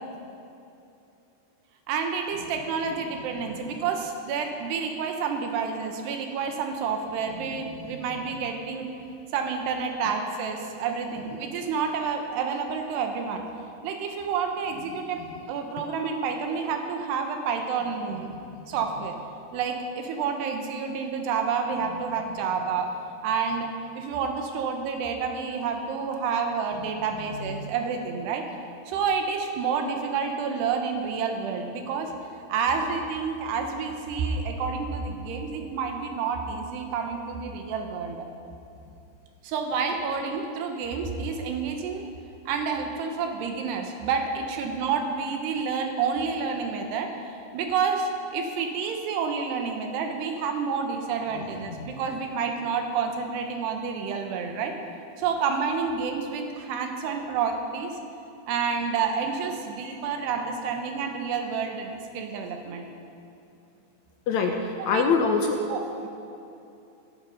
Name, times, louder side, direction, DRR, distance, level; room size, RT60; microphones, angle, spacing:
voice 1, 1.9-8.9 9.3-13.4 13.8-15.2 15.5-18.3 18.7-19.2 19.5-22.9 23.2-23.7 24.0-28.4 28.9-32.1 32.5-38.3 39.4-42.1 42.5-54.7 55.2-58.0 58.5-62.9 64.8-65.0 65.7-66.1, right 5 dB, 85° right, 4 dB, 3.4 m, -29 dB
voice 2, 64.3-65.6, left 5 dB, 90° left, 2 dB, 1.6 m, -24 dB
16.5 x 14.0 x 5.5 m, 2.7 s
omnidirectional pair, 4.7 m